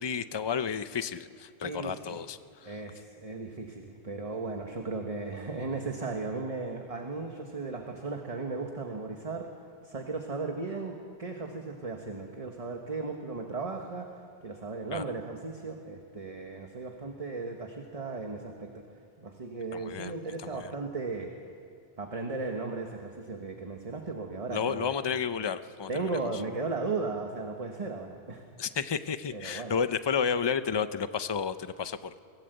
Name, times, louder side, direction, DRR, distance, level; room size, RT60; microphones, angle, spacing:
voice 1, 0.0-2.7 14.9-15.0 19.7-20.1 20.4-20.7 24.5-26.1 28.6-32.2, left 6 dB, 30° left, 12 dB, 0.6 m, -32 dB
voice 2, 1.6-2.2 2.6-9.5 9.8-14.1 14.4-18.8 19.2-21.3 22.0-24.9 25.9-28.4 29.3-29.7, right 3 dB, 35° right, 3 dB, 1.4 m, -36 dB
24.0 x 16.5 x 7.9 m, 2.4 s
omnidirectional pair, 1.0 m